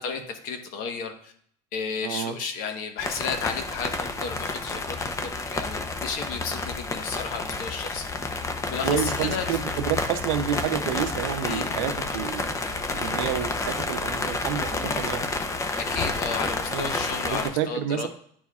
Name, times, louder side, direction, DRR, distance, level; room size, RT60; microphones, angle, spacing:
voice 1, 0.0-1.3 1.7-8.0 8.7-9.6 11.4-11.7 15.8-18.1, left 5 dB, 65° left, 5 dB, 1.1 m, -33 dB
voice 2, 2.0-2.4 8.8-15.2 16.7-16.9 17.2-18.1, right 9 dB, 90° right, 8 dB, 0.7 m, -29 dB
sound 1, 3.0-17.5, left 3 dB, 20° left, 0.7 m, -30 dB
10.0 x 4.3 x 2.4 m, 0.63 s
cardioid pair, 130°, 16 cm